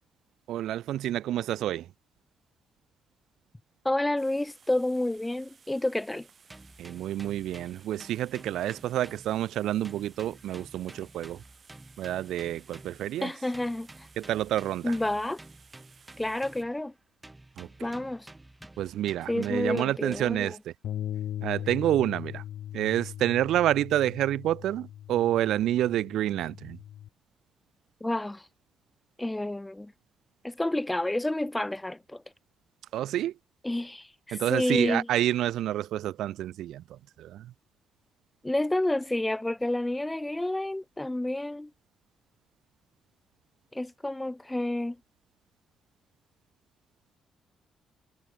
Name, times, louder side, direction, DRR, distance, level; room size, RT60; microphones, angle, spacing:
voice 1, 0.5-1.9 6.8-11.4 12.0-13.3 14.2-15.0 17.6-17.7 18.8-20.7 21.4-22.4 22.7-26.8 32.9-33.3 34.3-37.5, right 12 dB, 80° right, 0.3 m, -28 dB
voice 2, 3.8-6.3 13.2-14.1 14.8-15.4 16.2-16.9 17.8-18.3 19.3-20.6 28.0-28.4 29.2-29.9 30.4-32.2 33.6-35.1 38.4-41.7 43.7-45.0, left 1 dB, 10° left, 0.4 m, -29 dB
sound 1, 4.2-16.6, right 6 dB, 45° right, 1.6 m, -58 dB
sound 2, 6.5-9.6 9.8-13.1 13.5-16.9 17.2-20.5, right 2 dB, 15° right, 2.5 m, -51 dB
Bass guitar, 20.8-27.1, left 11 dB, 75° left, 0.7 m, -39 dB
cardioid pair, 90°, 0 cm